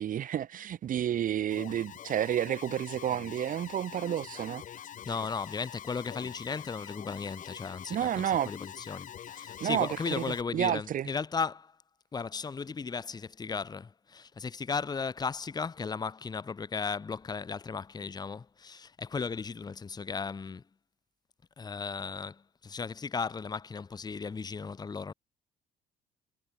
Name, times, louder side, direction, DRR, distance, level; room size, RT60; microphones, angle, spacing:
voice 1, 0.0-4.6 7.9-8.5 9.6-11.1, right 10 dB, 55° right, 1.6 m, -30 dB
Alarm, 1.5-10.4, left 9 dB, 50° left, 2.2 m, -45 dB
voice 2, 5.1-11.7 12.1-20.6 21.6-25.1, left 5 dB, 25° left, 1.3 m, -36 dB
cardioid pair, 110°, 17 cm